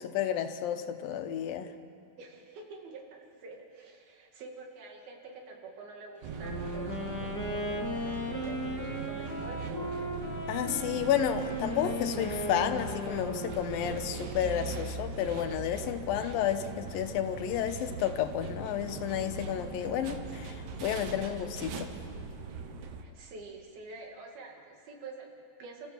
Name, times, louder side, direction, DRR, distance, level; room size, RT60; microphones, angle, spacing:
voice 1, 0.0-1.7 10.5-21.9, left 10 dB, 80° left, 8 dB, 2.7 m, -31 dB
voice 2, 2.2-10.2 23.0-25.9, right 3 dB, 85° right, 1 dB, 4.2 m, -47 dB
sound 1, 6.2-23.0, right 5 dB, 65° right, 2.3 m, -40 dB
Wind instrument woodwind instrument, 6.3-14.4, left 1 dB, 5° left, 1.7 m, -37 dB
29.5 x 14.5 x 7.2 m, 2.3 s
omnidirectional pair, 4.2 m